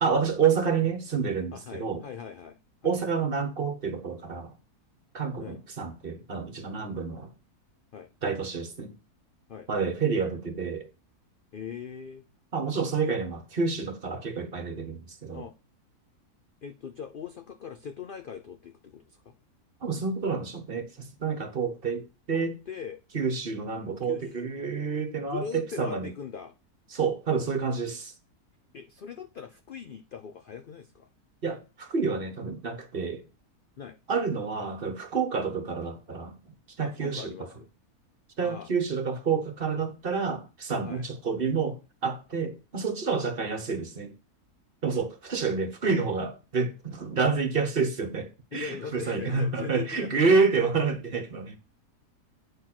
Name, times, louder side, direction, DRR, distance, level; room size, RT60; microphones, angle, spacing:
voice 1, 0.0-2.0 2.8-4.5 5.1-7.3 8.2-8.9 9.7-10.9 12.5-15.5 19.8-22.5 23.1-26.1 26.9-28.1 31.4-33.2 34.1-37.5 38.4-44.1 44.8-51.6, right 5 dB, 40° right, 1.2 m, -29 dB
voice 2, 1.5-2.9 5.4-5.6 7.9-8.1 9.5-9.7 11.5-12.2 13.0-13.2 15.3-15.5 16.6-19.3 22.3-23.0 24.0-24.3 25.2-26.5 28.7-31.1 33.8-34.0 36.8-37.7 38.4-38.7 40.8-41.0 44.9-45.0 48.5-50.7, left 7 dB, 65° left, 0.5 m, -40 dB
8.8 x 4.4 x 6.0 m
omnidirectional pair, 1.6 m